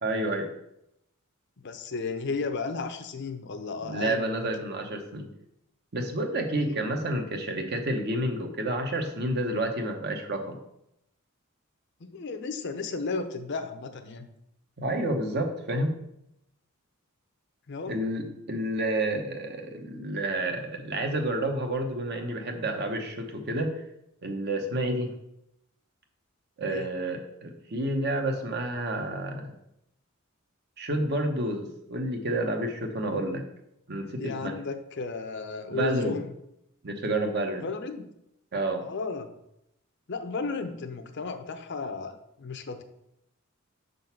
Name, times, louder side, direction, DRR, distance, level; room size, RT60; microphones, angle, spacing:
voice 1, 0.0-0.5 3.8-5.3 5.9-10.6 14.8-15.9 17.9-23.7 24.2-25.1 26.6-29.5 30.8-33.4 33.9-34.6 35.7-36.2 36.8-37.7 38.5-38.8, right 1 dB, 50° right, 4 dB, 0.9 m, -29 dB
voice 2, 1.6-4.5 6.6-6.8 12.0-14.3 17.7-17.9 26.6-26.9 34.2-36.3 37.6-38.1 38.8-39.3 40.1-42.8, left 4 dB, 55° left, 8 dB, 0.6 m, -34 dB
5.7 x 3.9 x 5.8 m, 0.81 s
head